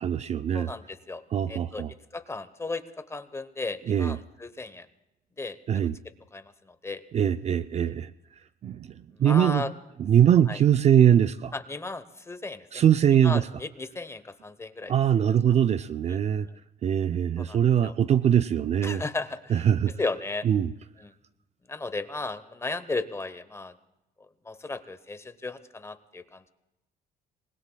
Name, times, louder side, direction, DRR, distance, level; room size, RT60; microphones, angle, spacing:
voice 1, 0.0-0.7 1.3-1.9 3.9-4.2 5.7-5.9 7.1-8.1 8.6-8.9 9.2-9.7 10.0-11.5 12.7-13.5 14.9-16.5 16.8-19.0 19.5-19.9 20.4-20.7, right 9 dB, 40° right, 13 dB, 0.5 m, -22 dB
voice 2, 0.5-1.2 1.5-1.8 2.1-4.9 5.4-5.9 6.3-7.0 7.8-7.9 9.2-9.7 10.5-10.6 11.5-12.8 13.2-15.0 16.1-16.2 16.5-16.6 17.4-17.9 18.8-19.7 20.0-20.5 21.0-21.1 21.7-23.7 24.4-26.5, left 3 dB, 15° left, 12 dB, 0.9 m, -35 dB
27.0 x 20.0 x 2.3 m, 0.91 s
cardioid pair, 110°, 17 cm